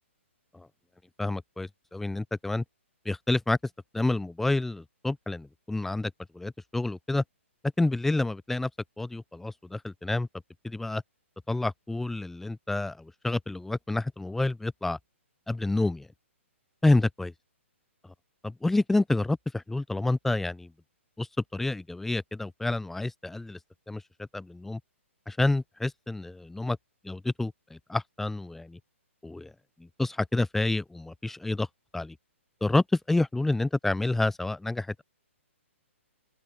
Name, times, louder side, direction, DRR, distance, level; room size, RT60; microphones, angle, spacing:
voice 1, 1.2-2.6 3.1-3.6 3.9-7.2 7.8-8.7 9.0-10.3 10.6-11.0 11.5-15.0 15.5-16.1 16.8-17.3 18.4-20.7 21.2-21.3 21.5-23.6 23.9-24.0 24.3-24.8 25.3-26.8 27.0-28.8 29.2-29.5 29.8-31.7 31.9-32.1 32.6-35.0, left 2 dB, 5° left, 0.5 m, -28 dB
open air
hypercardioid pair, 135°, 7 cm